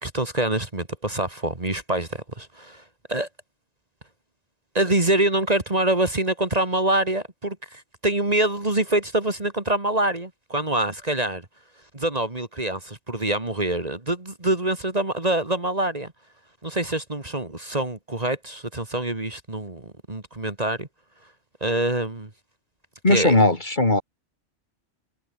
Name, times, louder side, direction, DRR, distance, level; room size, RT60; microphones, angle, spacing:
voice 1, 0.0-2.8 3.1-3.3 4.7-11.5 11.9-16.1 16.6-20.9 21.6-22.3 23.1-23.4, right 1 dB, 35° right, 2.4 m, -25 dB
voice 2, 23.0-24.0, left 2 dB, 40° left, 3.1 m, -18 dB
omnidirectional pair, 1.2 m